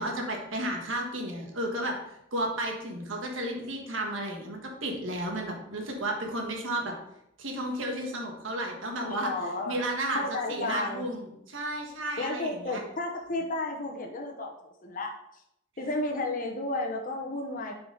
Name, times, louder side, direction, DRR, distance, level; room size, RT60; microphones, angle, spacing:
voice 1, 0.0-6.9 7.4-9.3 9.7-12.8, right 1 dB, 90° right, 1 dB, 1.5 m, -33 dB
voice 2, 9.0-9.8 10.1-11.1 12.2-15.1 15.8-17.7, left 2 dB, 45° left, 1 dB, 1.0 m, -32 dB
7.2 x 4.7 x 3.9 m, 0.77 s
head